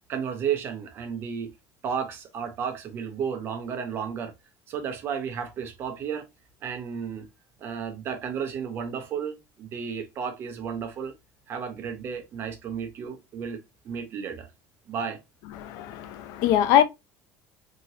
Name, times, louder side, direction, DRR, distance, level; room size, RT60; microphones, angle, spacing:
voice 1, 0.1-1.5 1.8-4.3 4.7-6.3 6.6-7.3 7.6-11.1 11.5-14.5 14.9-15.2, right 7 dB, 35° right, 0.6 m, -33 dB
voice 2, 15.6-16.8, left 11 dB, 65° left, 0.5 m, -22 dB
2.9 x 2.8 x 2.6 m
cardioid pair, 175°, 7 cm